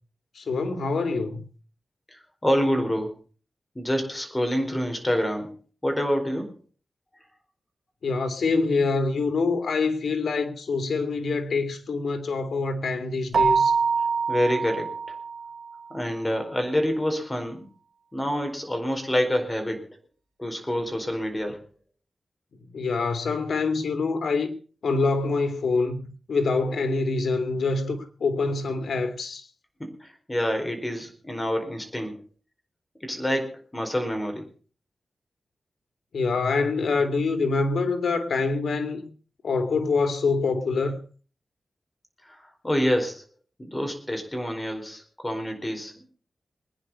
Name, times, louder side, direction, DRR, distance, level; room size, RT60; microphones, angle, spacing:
voice 1, 0.4-1.4 8.0-13.7 22.7-24.5 24.8-29.4 36.1-39.1 39.4-41.0, left 4 dB, 85° left, 2.4 m, -25 dB
voice 2, 2.1-3.1 3.7-5.5 5.8-6.5 14.3-14.9 15.9-17.7 18.1-19.8 20.4-21.6 29.8-32.2 33.0-34.4 42.2-43.2 43.6-46.1, equal, 15° left, 4.5 m, -27 dB
Keyboard (musical), 13.3-15.8, right 5 dB, 85° right, 1.3 m, -24 dB
22.5 x 10.0 x 5.5 m
wide cardioid pair, 100°, 0 cm